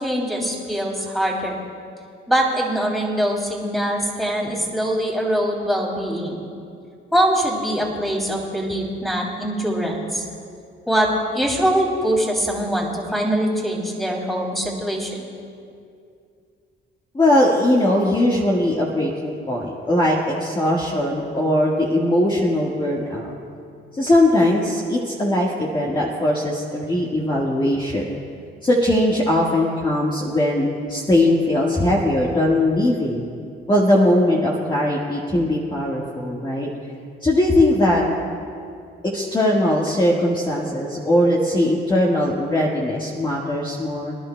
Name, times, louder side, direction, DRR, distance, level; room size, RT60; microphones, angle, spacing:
voice 1, 0.0-1.6 2.3-6.4 7.1-10.2 10.9-11.1 11.3-15.3, right 1 dB, ahead, -1 dB, 2.8 m, -23 dB
voice 2, 17.1-23.3 23.9-28.1 28.6-33.3 33.7-36.7 37.2-38.0 39.1-44.2, left 1 dB, 20° left, -4 dB, 1.5 m, -20 dB
26.0 x 11.0 x 2.2 m, 2.4 s
cardioid pair, 90°, 20 cm